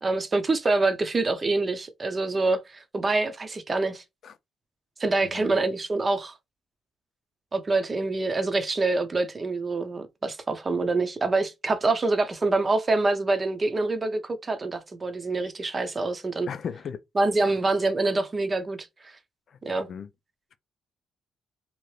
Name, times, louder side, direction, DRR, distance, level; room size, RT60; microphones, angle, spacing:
voice 1, 0.0-4.0 5.0-6.3 7.5-16.5 17.2-19.1 19.6-19.9, right 3 dB, 30° right, 0.7 m, -26 dB
voice 2, 5.2-5.5 16.5-17.0 17.4-17.5 19.9-20.1, left 7 dB, 55° left, 0.4 m, -36 dB
2.8 x 2.6 x 3.1 m
cardioid pair, 90°, 0 cm